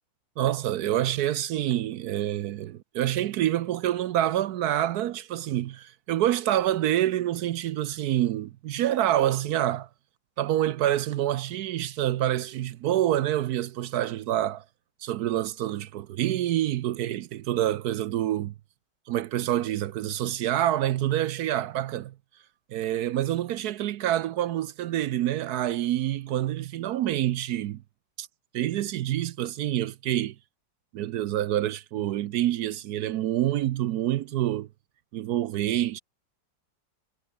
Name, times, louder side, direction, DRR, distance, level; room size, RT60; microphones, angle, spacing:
voice 1, 0.4-9.9 10.4-14.6 15.0-18.5 19.1-22.1 22.7-27.8 28.2-28.3 28.5-30.4 30.9-34.7 35.1-36.0, right 12 dB, 70° right, 1.0 m, -27 dB
omnidirectional pair, 1.9 m